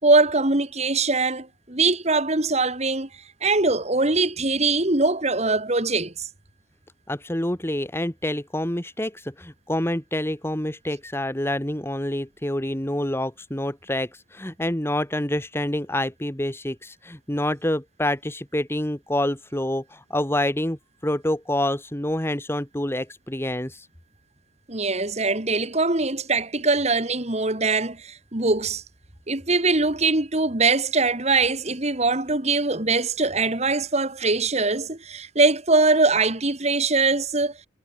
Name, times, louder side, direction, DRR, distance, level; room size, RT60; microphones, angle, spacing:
voice 1, 0.0-3.1 3.4-6.3 24.7-28.8 29.3-37.6, right 3 dB, 35° right, 2.6 m, -22 dB
voice 2, 7.1-23.9, left 1 dB, 15° left, 1.7 m, -27 dB
head